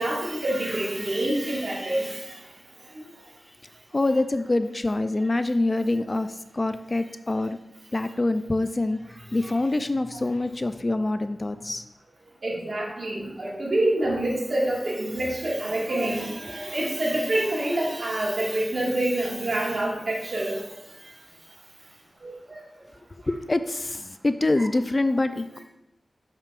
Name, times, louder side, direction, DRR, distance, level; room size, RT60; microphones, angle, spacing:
voice 1, 0.0-2.1 9.4-9.5 12.4-20.6 22.2-22.6, right 1 dB, 65° right, -4 dB, 1.9 m, -27 dB
voice 2, 3.9-7.6 7.9-9.0 9.3-11.8 16.6-16.7 23.1-25.6, left 2 dB, 40° left, 10 dB, 0.4 m, -25 dB
6.6 x 5.9 x 2.5 m, 0.90 s
cardioid pair, 45°, 0 cm